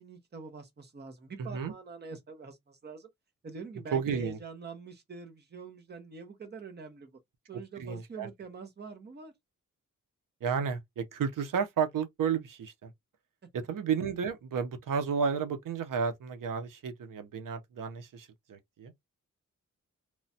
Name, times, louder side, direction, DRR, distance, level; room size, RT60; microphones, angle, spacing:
voice 1, 0.0-3.1 3.4-7.1 7.5-9.3, right 4 dB, 35° right, 0.7 m, -45 dB
voice 2, 1.4-1.7 3.9-4.4 7.8-8.3 10.4-12.9 13.5-18.9, right 6 dB, 85° right, 0.6 m, -32 dB
3.0 x 2.1 x 2.6 m
wide cardioid pair, 175°, 32 cm